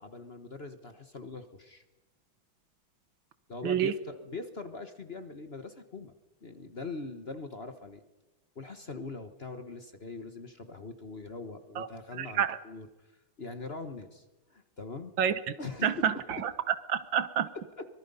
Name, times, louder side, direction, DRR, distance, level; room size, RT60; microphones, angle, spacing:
voice 1, 0.0-1.8 3.5-6.1 6.4-8.0 8.5-12.9 13.4-14.2 14.5-15.1 15.6-16.4 17.5-17.9, left 3 dB, 35° left, 8 dB, 1.2 m, -42 dB
voice 2, 3.6-3.9 11.8-11.9 12.2-12.6 15.2-15.3 15.8-17.5, right 9 dB, 70° right, 13 dB, 1.7 m, -28 dB
24.5 x 23.0 x 5.5 m, 1.1 s
omnidirectional pair, 2.2 m